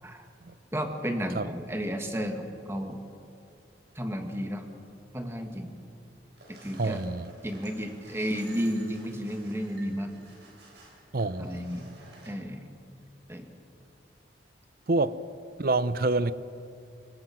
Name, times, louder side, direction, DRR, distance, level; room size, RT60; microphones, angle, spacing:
voice 1, 0.7-3.0 4.0-4.6 5.1-5.7 6.5-7.0 7.4-10.1 11.4-11.8 12.3-12.6 13.3-13.5, equal, 15° right, 4 dB, 1.9 m, -32 dB
sound 1, 6.3-12.3, right 2 dB, 70° right, 6.6 m, -53 dB
voice 2, 6.7-7.3 11.1-11.9 14.9-15.2 15.6-16.3, right 2 dB, 55° right, 15 dB, 0.7 m, -27 dB
28.0 x 20.5 x 6.0 m, 2.5 s
head